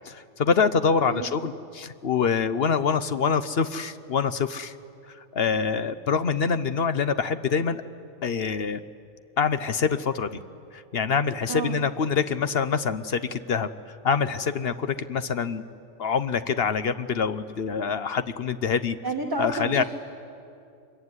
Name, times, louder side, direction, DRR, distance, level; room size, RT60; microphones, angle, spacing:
voice 1, 0.0-4.7 5.1-7.8 8.2-8.8 9.4-10.4 10.7-15.6 16.0-19.0 19.4-19.8, left 6 dB, 55° left, 12 dB, 1.0 m, -25 dB
voice 2, 11.5-11.8 19.0-19.8, right 3 dB, 15° right, 2 dB, 1.4 m, -30 dB
25.0 x 22.5 x 9.7 m, 2.5 s
omnidirectional pair, 1.3 m